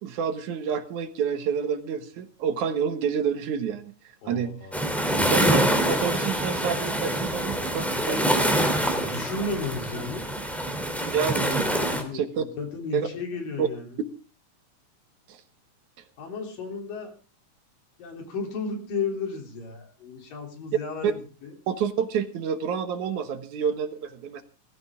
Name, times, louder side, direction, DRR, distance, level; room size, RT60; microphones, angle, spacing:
voice 1, 0.0-3.9 4.3-4.5 5.3-8.6 8.9-9.1 11.1-11.7 12.1-12.4 12.9-13.1 13.6-13.7 15.3-15.4 21.0-21.1 21.7-24.4, right 7 dB, 70° right, 9 dB, 2.5 m, -28 dB
voice 2, 4.2-5.2 8.9-10.3 11.4-14.0 16.2-17.1 18.0-21.5, left 4 dB, 85° left, 3 dB, 5.1 m, -34 dB
sound 1, 4.7-12.0, right 1 dB, ahead, 2.7 m, -25 dB
18.5 x 15.0 x 3.7 m, 0.35 s
omnidirectional pair, 3.8 m